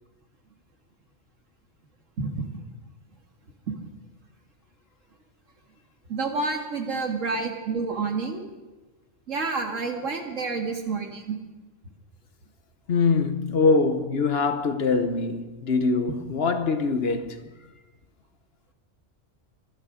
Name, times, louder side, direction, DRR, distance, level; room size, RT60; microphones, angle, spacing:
voice 1, 6.1-8.4 9.3-11.4, right 4 dB, 90° right, 2.3 m, -29 dB
voice 2, 12.9-17.4, left 4 dB, 55° left, 1.2 m, -23 dB
25.0 x 11.5 x 5.1 m
omnidirectional pair, 1.3 m